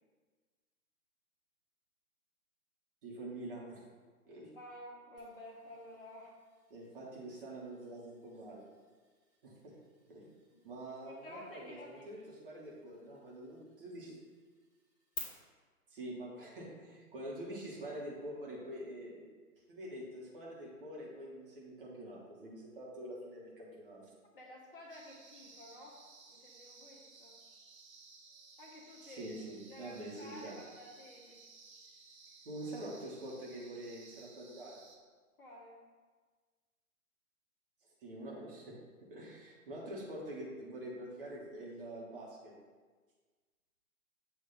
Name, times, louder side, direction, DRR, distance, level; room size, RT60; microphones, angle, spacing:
voice 1, 3.0-3.8 4.3-4.5 6.7-8.6 9.4-9.7 10.1-10.3 10.6-14.2 15.9-19.3 19.7-24.1 29.0-30.6 32.4-34.8 38.0-38.8 39.1-42.6, right 1 dB, 35° right, -4 dB, 1.3 m, -46 dB
voice 2, 4.5-6.3 10.5-12.3 24.3-26.0 26.3-27.4 28.6-29.4 29.7-31.4 35.4-35.8, left 1 dB, 35° left, -3 dB, 1.1 m, -52 dB
sound 1, 5.2-15.2, left 2 dB, 10° left, 1.4 m, -57 dB
sound 2, 24.9-35.0, right 4 dB, 65° right, 1.2 m, -58 dB
7.7 x 2.8 x 5.5 m, 1.4 s
figure-of-eight pair, 130°, 45 cm